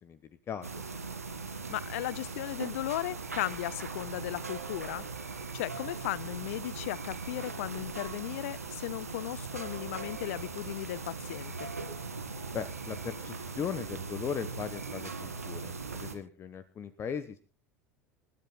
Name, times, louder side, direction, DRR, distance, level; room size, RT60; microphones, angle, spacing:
voice 1, 0.0-0.8 12.5-17.4, left 7 dB, 35° left, 1.2 m, -38 dB
sound 1, 0.6-16.1, right 4 dB, 85° right, 1.9 m, -40 dB
voice 2, 1.5-5.0 5.5-11.7, left 16 dB, 65° left, 0.6 m, -36 dB
28.0 x 13.0 x 2.2 m
figure-of-eight pair, 75°, 8 cm